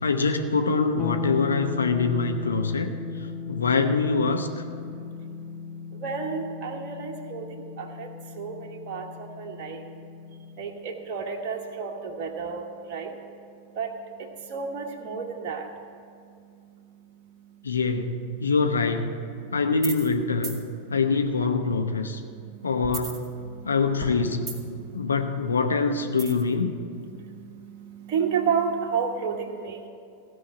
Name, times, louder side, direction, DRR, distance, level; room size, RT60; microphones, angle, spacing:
voice 1, 0.0-2.9 3.5-4.5 17.6-19.1 19.5-20.6 20.9-22.2 22.6-23.3 23.6-24.6 24.9-26.7, left 4 dB, 75° left, 6 dB, 0.7 m, -24 dB
sound 1, 1.0-10.8, left 5 dB, 35° left, 0.6 m, -36 dB
voice 2, 6.0-7.5 7.8-8.1 8.4-9.0 9.4-9.8 10.6-13.1 13.8-13.9 14.2-15.7 27.5-29.9, right 6 dB, 40° right, 1 dB, 1.1 m, -31 dB
sound 2, 19.8-20.1 20.4-20.6 22.8-23.7 24.0-24.9 26.2-26.5, right 3 dB, 10° right, 2.2 m, -35 dB
15.5 x 5.6 x 8.4 m, 2.4 s
figure-of-eight pair, 90°, 0 cm